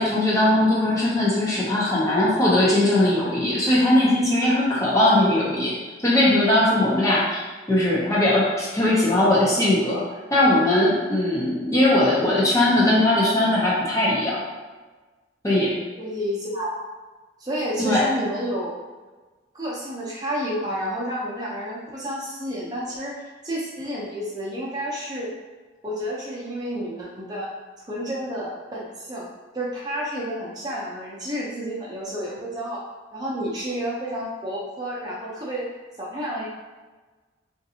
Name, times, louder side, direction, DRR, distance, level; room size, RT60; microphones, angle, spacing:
voice 1, 0.0-5.7 6.0-7.4 7.7-10.0 10.3-14.4 15.4-15.7 17.8-18.1, left 1 dB, 15° left, -6 dB, 0.6 m, -20 dB
voice 2, 16.0-16.7 17.4-18.8 19.5-23.1 23.4-25.3 25.8-27.5 27.9-29.3 29.5-32.8 33.1-35.7 36.0-36.5, equal, 20° right, -6 dB, 0.7 m, -30 dB
3.8 x 2.6 x 2.7 m, 1.3 s
head